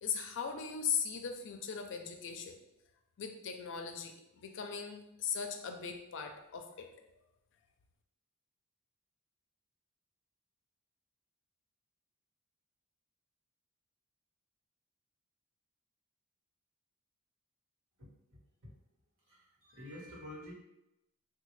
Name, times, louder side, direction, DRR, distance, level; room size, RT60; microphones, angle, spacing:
voice 1, 0.0-2.5 3.2-6.9, left 7 dB, 55° left, 4 dB, 0.4 m, -38 dB
voice 2, 19.3-20.5, left 1 dB, 60° right, -4 dB, 1.2 m, -49 dB
3.5 x 2.3 x 3.1 m, 0.88 s
head